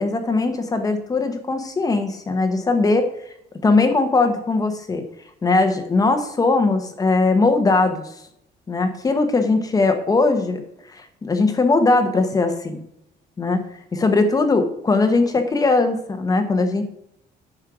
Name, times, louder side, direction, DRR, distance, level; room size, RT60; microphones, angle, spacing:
voice 1, 0.0-3.1 3.6-5.0 5.4-8.1 8.7-10.6 10.9-12.8 13.4-13.6 13.9-16.9, left 3 dB, 20° left, 7 dB, 1.0 m, -20 dB
9.9 x 6.4 x 6.1 m, 0.74 s
cardioid pair, 180°, 18 cm